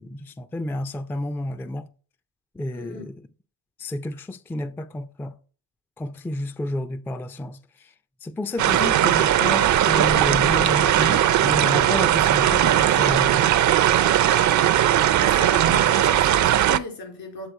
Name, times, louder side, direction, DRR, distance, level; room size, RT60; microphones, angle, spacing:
voice 1, 0.0-1.9 2.6-3.1 3.8-5.4 6.0-7.9 8.2-13.4, left 1 dB, 5° left, 0.3 m, -30 dB
voice 2, 2.7-3.1 8.5-8.7 15.2-17.5, left 1 dB, 75° left, 3.3 m, -36 dB
sound 1, 8.6-16.8, right 11 dB, 50° right, 0.5 m, -19 dB
7.9 x 3.9 x 4.6 m
supercardioid pair, 65°, 39 cm